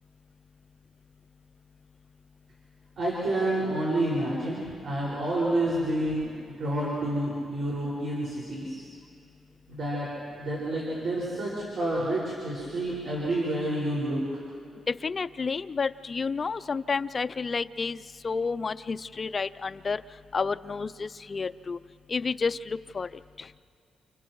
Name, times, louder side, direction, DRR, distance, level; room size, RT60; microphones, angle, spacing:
voice 1, 3.0-6.3 6.6-8.8 9.7-10.1 10.4-14.2, right 1 dB, 60° right, -6 dB, 5.5 m, -29 dB
voice 2, 15.0-18.0 18.2-20.0 20.3-21.8 22.1-23.1 23.4-23.5, left 4 dB, 35° left, 13 dB, 0.4 m, -30 dB
30.0 x 29.5 x 3.1 m, 2.4 s
cardioid pair, 110°, 0 cm